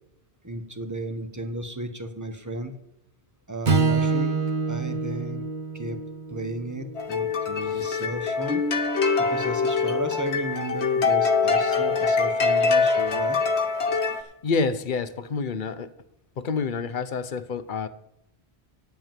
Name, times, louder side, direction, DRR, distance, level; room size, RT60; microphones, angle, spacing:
voice 1, 0.4-2.7 3.5-4.4 4.7-5.5 5.7-6.0 6.3-8.6 9.2-13.4, right 1 dB, 15° right, 7 dB, 1.1 m, -34 dB
Strum, 3.7-8.0, right 4 dB, 45° right, 1.2 m, -27 dB
sound 1, 7.0-14.2, left 4 dB, 80° left, 1.4 m, -24 dB
voice 2, 7.6-8.0 14.4-15.9 16.4-17.9, left 4 dB, 55° left, 13 dB, 0.9 m, -28 dB
9.2 x 8.1 x 7.4 m, 0.81 s
omnidirectional pair, 1.1 m